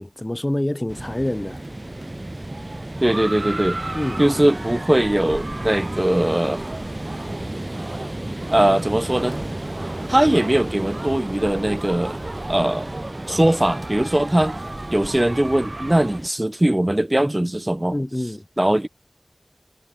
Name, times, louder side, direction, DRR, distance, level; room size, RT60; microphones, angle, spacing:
voice 1, 0.0-1.6 3.9-4.2 17.9-18.5, left 1 dB, 30° left, 0.6 m, -26 dB
sound 1, 0.9-16.3, right 1 dB, 45° right, 2.2 m, -33 dB
sound 2, 1.4-13.6 13.9-14.1, left 2 dB, 65° left, 3.5 m, -53 dB
sound 3, 2.5-16.2, right 2 dB, 65° right, 3.5 m, -36 dB
voice 2, 3.0-3.8 4.2-6.6 8.5-9.3 10.1-12.2 12.5-12.9 13.3-14.6 14.9-17.9 18.6-18.9, right 1 dB, 30° right, 0.9 m, -20 dB
wide cardioid pair, 45°, 0 cm